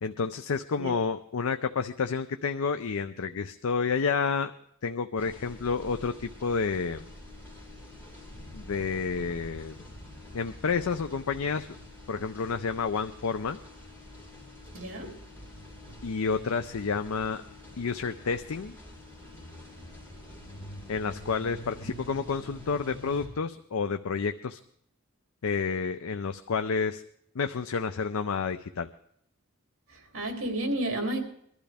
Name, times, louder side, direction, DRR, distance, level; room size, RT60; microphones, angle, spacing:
voice 1, 0.0-4.5 4.8-7.1 8.5-9.8 10.3-11.8 12.1-13.6 16.0-17.4 17.8-18.8 20.9-24.6 25.4-27.0 27.3-28.9, left 5 dB, 90° left, 0.5 m, -30 dB
sound 1, 5.2-23.3, left 1 dB, 10° left, 4.6 m, -46 dB
voice 2, 14.7-15.1 29.9-31.2, right 1 dB, 70° right, 3.0 m, -31 dB
22.0 x 12.5 x 3.5 m
head